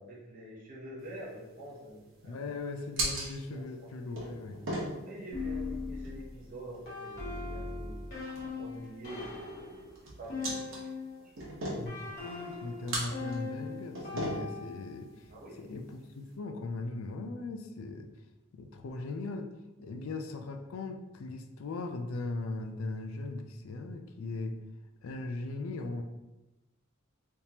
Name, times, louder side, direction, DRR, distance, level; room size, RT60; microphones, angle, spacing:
voice 1, 0.0-2.4 3.5-3.9 5.0-8.0 8.6-9.9 10.2-11.4 15.3-15.7, right 1 dB, 40° right, -6 dB, 0.7 m, -46 dB
sound 1, 1.0-16.3, right 1 dB, 65° right, 1.0 m, -41 dB
voice 2, 2.2-4.8 11.7-15.3 15.6-18.1 18.5-19.5 19.8-24.6 25.0-26.0, left 3 dB, 75° left, 6 dB, 0.4 m, -39 dB
sound 2, 5.3-11.3 11.8-15.1, left 4 dB, 50° left, 1.5 m, -40 dB
3.5 x 2.8 x 2.8 m, 1.0 s
head